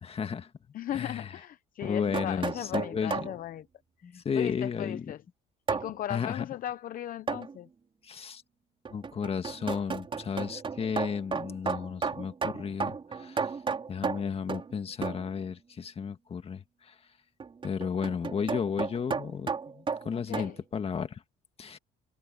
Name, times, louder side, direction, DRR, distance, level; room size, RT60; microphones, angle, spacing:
voice 1, 0.0-0.5 0.9-1.3 1.8-3.3 4.0-5.1 6.1-6.5 8.0-8.4 8.9-13.5 13.9-16.9 17.6-21.2 21.6-21.8, left 6 dB, 35° left, 1.9 m, -33 dB
voice 2, 0.7-3.7 4.0-5.2 5.7-7.7 20.1-20.6, left 12 dB, 55° left, 0.7 m, -37 dB
sound 1, 1.8-3.4 5.7-5.9 7.3-7.5 8.8-14.7 15.0-15.3 17.4-20.5, right 5 dB, 30° right, 4.3 m, -33 dB
cardioid pair, 110°, 17 cm